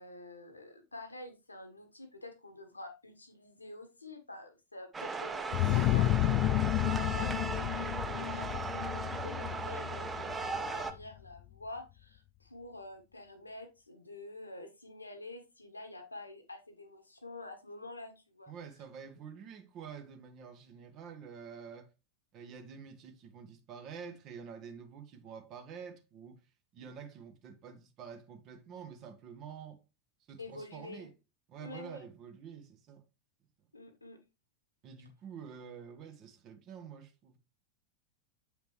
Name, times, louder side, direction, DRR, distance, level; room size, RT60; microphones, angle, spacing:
voice 1, 0.0-18.5 30.4-31.1 31.6-32.0 33.7-34.2, left 2 dB, 80° left, 1.4 m, -48 dB
sound 1, 4.9-10.9, right 4 dB, 15° right, 0.7 m, -37 dB
sound 2, 5.5-11.0, left 15 dB, 40° left, 0.3 m, -31 dB
voice 2, 18.5-21.9 22.3-26.4 26.7-29.8 30.3-31.1 31.5-33.0 34.8-37.4, right 7 dB, 35° right, 1.4 m, -48 dB
7.7 x 5.1 x 3.2 m
figure-of-eight pair, 90°, 0 cm